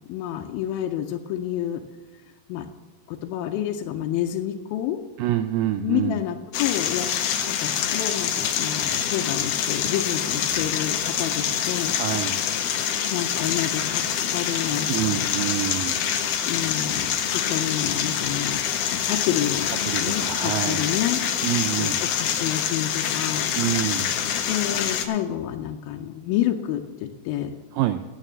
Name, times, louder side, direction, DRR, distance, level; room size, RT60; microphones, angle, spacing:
voice 1, 0.1-1.8 2.5-2.7 3.1-5.0 5.8-7.1 7.5-12.0 13.1-14.0 14.3-15.4 16.5-17.1 17.5-19.7 20.0-21.2 21.8-23.5 24.5-27.6, left 11 dB, 85° left, 4 dB, 2.5 m, -29 dB
voice 2, 5.2-6.2 9.8-9.9 11.9-12.4 14.7-16.0 19.9-20.9 21.4-22.0 23.6-24.1 27.7-28.0, right 12 dB, 80° right, 8 dB, 2.1 m, -27 dB
sound 1, 6.5-25.1, left 9 dB, 70° left, 2.1 m, -26 dB
9.1 x 9.1 x 7.2 m, 1.3 s
omnidirectional pair, 4.1 m